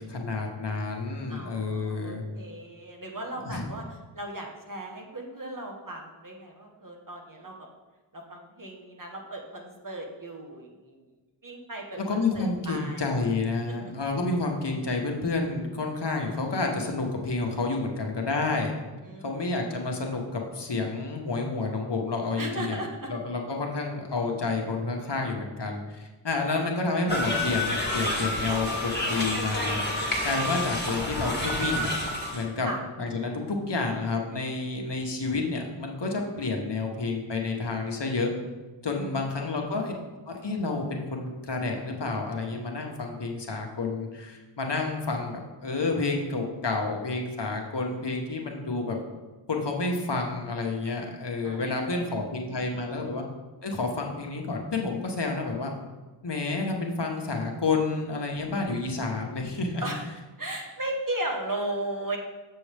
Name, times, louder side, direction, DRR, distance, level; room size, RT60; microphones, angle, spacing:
voice 1, 0.0-2.2 3.4-3.7 12.0-18.7 19.2-22.8 23.1-29.8 30.2-31.9 32.3-32.7 33.0-38.3 38.8-39.9 40.3-49.0 49.5-53.2 53.6-55.7 56.2-59.8, left 3 dB, 60° left, 1 dB, 1.1 m, -29 dB
voice 2, 1.3-3.8 4.1-7.6 8.1-11.0 11.4-13.0 13.7-13.8 19.0-19.8 22.4-23.1 26.4-26.7 32.6-32.8 39.0-39.5 51.4-53.0 59.8-60.0 60.4-62.2, right 1 dB, 40° right, 1 dB, 1.2 m, -37 dB
sound 1, 27.1-32.4, left 1 dB, 20° left, 1.7 m, -29 dB
7.3 x 6.8 x 3.4 m, 1.2 s
wide cardioid pair, 60°, 48 cm